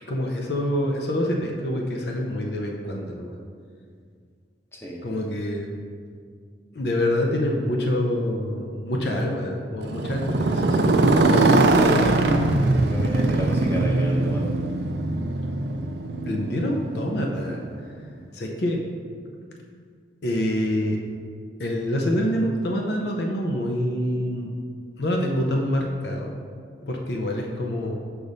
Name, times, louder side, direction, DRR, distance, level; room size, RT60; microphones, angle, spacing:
voice 1, 0.1-3.4 5.0-5.8 6.7-10.9 16.2-17.6 18.3-18.8 20.2-21.0 21.6-24.5 25.0-26.3 26.9-28.0, left 1 dB, 60° left, 1 dB, 0.7 m, -26 dB
Motorcycle, 9.8-17.9, right 2 dB, 60° right, 0.5 m, -21 dB
voice 2, 12.8-14.5, equal, 15° left, -2 dB, 0.9 m, -32 dB
6.8 x 5.1 x 4.1 m, 2.1 s
head